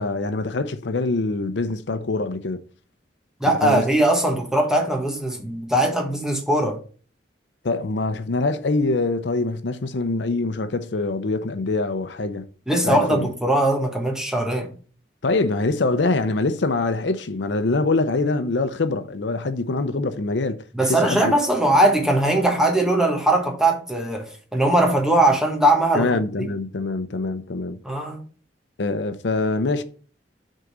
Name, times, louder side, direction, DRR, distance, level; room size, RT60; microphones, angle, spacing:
voice 1, 0.0-2.6 3.4-4.0 7.6-12.5 12.8-13.3 15.2-20.6 20.9-21.3 25.9-27.8 28.8-29.8, left 3 dB, 80° left, 0.6 m, -24 dB
voice 2, 3.4-6.8 12.7-14.7 20.7-26.1 26.4-26.5 27.8-28.2, right 1 dB, 5° right, 1.3 m, -20 dB
6.4 x 3.8 x 5.9 m
head